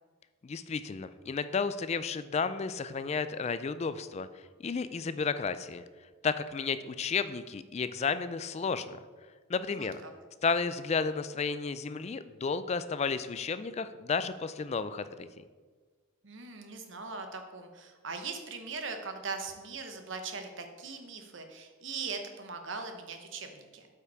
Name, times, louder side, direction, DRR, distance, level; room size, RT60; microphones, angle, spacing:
voice 1, 0.4-5.8 6.2-9.0 9.5-10.0 10.4-15.3, left 5 dB, 30° left, 13 dB, 0.3 m, -32 dB
voice 2, 9.8-10.1 16.2-23.9, right 4 dB, 60° right, 6 dB, 1.0 m, -40 dB
8.2 x 5.7 x 4.8 m, 1.5 s
head